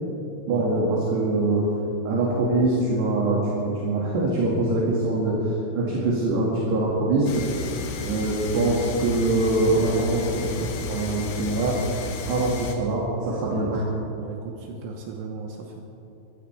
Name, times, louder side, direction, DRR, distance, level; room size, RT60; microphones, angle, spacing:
voice 1, 0.5-1.6 2.1-7.7 8.0-11.8 12.3-13.8, right 2 dB, 60° right, -5 dB, 4.0 m, -23 dB
sound 1, 7.3-12.8, left 4 dB, 70° left, 3.2 m, -33 dB
voice 2, 14.2-15.8, right 5 dB, 75° right, 1 dB, 3.5 m, -37 dB
25.5 x 15.0 x 3.5 m, 2.8 s
omnidirectional pair, 5.9 m